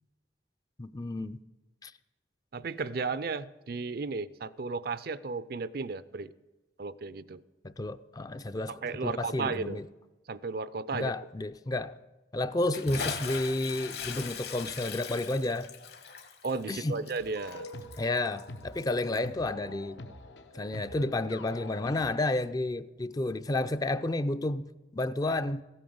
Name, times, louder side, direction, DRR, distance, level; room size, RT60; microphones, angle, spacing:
voice 1, 0.8-1.4 1.8-1.9 7.6-8.7 9.0-9.8 10.9-12.0 12.3-15.7 16.7-17.0 18.0-20.1 20.5-25.6, left 2 dB, 20° left, 11 dB, 0.4 m, -31 dB
voice 2, 2.5-6.3 6.8-7.4 8.7-9.8 10.3-11.1 16.4-17.7, right 4 dB, 55° right, 16 dB, 0.5 m, -34 dB
Bathtub (filling or washing) / Splash splatter, 12.7-19.3, left 6 dB, 60° left, 1.4 m, -40 dB
sound 1, 17.2-22.2, left 2 dB, 80° left, 1.0 m, -45 dB
15.5 x 8.9 x 7.8 m, 1.1 s
head